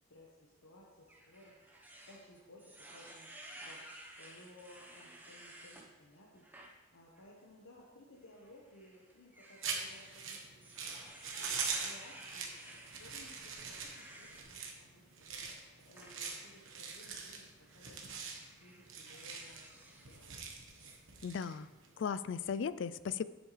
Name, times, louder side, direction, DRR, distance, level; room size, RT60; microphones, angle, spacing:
voice 1, 0.1-1.8 2.0-6.4 6.9-10.7 11.3-15.4 15.8-18.0 18.6-20.5, left 1 dB, 85° left, -4 dB, 1.2 m, -59 dB
sound 1, 1.1-5.9 6.4-6.7 7.2-7.3 8.3-14.5 16.0-16.6 17.6-17.8 18.3-20.5 20.8-20.9, right 1 dB, 10° right, 0.9 m, -54 dB
sound 2, 9.6-22.0, right 5 dB, 70° right, 1.2 m, -43 dB
voice 2, 21.2-21.7 22.0-23.2, left 6 dB, 60° left, 15 dB, 0.3 m, -36 dB
9.8 x 8.0 x 3.3 m, 1.2 s
head